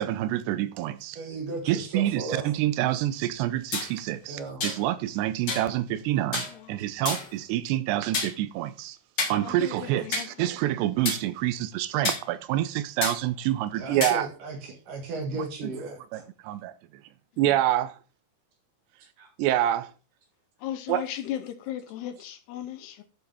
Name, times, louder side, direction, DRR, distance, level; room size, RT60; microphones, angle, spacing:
voice 1, 0.0-1.2 1.7-9.0 9.3-14.3 16.1-16.7 17.4-18.0 19.4-19.9 20.9-21.0, right 13 dB, 85° right, 2.8 m, -27 dB
voice 2, 1.2-2.5 4.3-4.6 13.7-16.3 19.2-19.3, right 3 dB, 55° right, 3.0 m, -35 dB
sound 1, 3.7-3.9 4.6-4.8 5.5-5.7 6.3-6.5 7.0-7.3 8.1-8.3 9.2-9.4 10.1-10.3 11.0-11.2 12.0-12.2 13.0-13.2 14.0-14.2, left 3 dB, 55° left, 1.2 m, -29 dB
voice 3, 6.5-7.1 9.3-10.5 17.3-17.6 20.6-23.0, left 11 dB, 75° left, 2.8 m, -37 dB
11.5 x 7.0 x 3.5 m
omnidirectional pair, 4.9 m